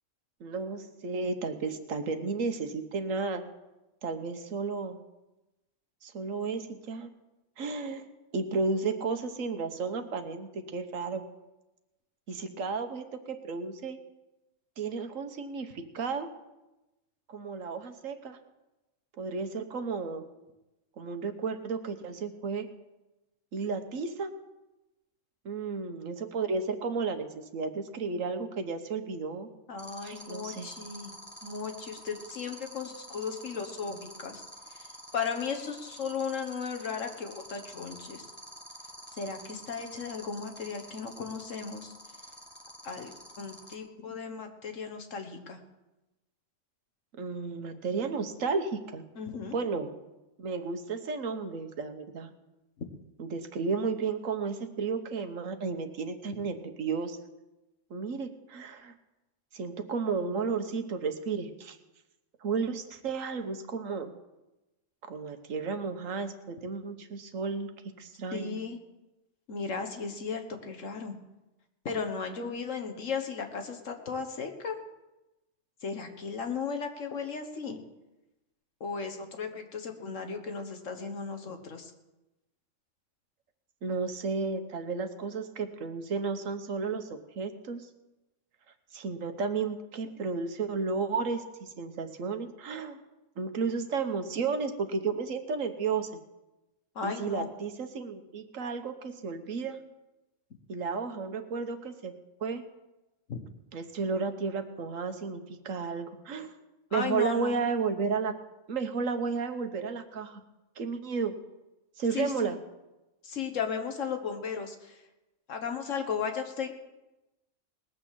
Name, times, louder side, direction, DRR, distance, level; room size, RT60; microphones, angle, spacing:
voice 1, 0.4-3.4 4.0-5.0 6.0-7.1 7.6-8.0 8.3-11.2 12.3-14.0 14.8-16.3 17.3-18.4 19.2-20.2 21.0-22.7 23.5-24.3 25.4-29.5 30.0-30.7 47.2-49.0 49.5-49.9 50.4-52.3 53.2-57.2 57.9-58.9 59.5-61.8 62.4-64.1 65.0-67.7 68.0-68.6 83.8-87.9 88.9-93.0 93.4-96.1 97.0-99.8 100.7-102.1 102.4-102.6 103.7-106.5 106.9-108.3 108.7-110.4 110.8-111.3 112.0-112.6, right 4 dB, 85° right, 8 dB, 1.5 m, -33 dB
voice 2, 29.7-31.1 31.4-34.4 34.7-34.9 35.1-38.2 39.1-41.9 42.8-45.6 49.2-49.6 68.3-68.8 69.5-71.2 71.9-74.8 75.8-77.8 78.8-81.9 97.0-97.5 103.3-103.4 106.9-107.6 112.1-112.6 113.2-115.0 115.5-116.7, left 5 dB, 75° left, 6 dB, 1.8 m, -35 dB
sound 1, 29.8-43.7, equal, 10° left, 1.8 m, -47 dB
19.5 x 6.6 x 7.5 m, 1.0 s
omnidirectional pair, 1.3 m